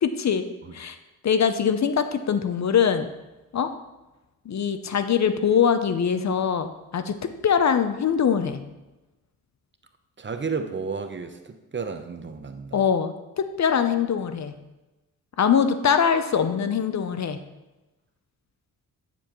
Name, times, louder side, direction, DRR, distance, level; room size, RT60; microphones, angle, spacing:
voice 1, 0.0-0.4 0.7-1.0 1.2-3.1 3.5-3.7 4.5-7.2 7.4-8.6 12.7-14.5 15.4-17.4, left 7 dB, 50° left, 10 dB, 0.8 m, -22 dB
voice 2, 10.2-12.9, right 5 dB, 30° right, 7 dB, 0.9 m, -32 dB
9.8 x 7.1 x 3.1 m, 1.0 s
supercardioid pair, 55°, 37 cm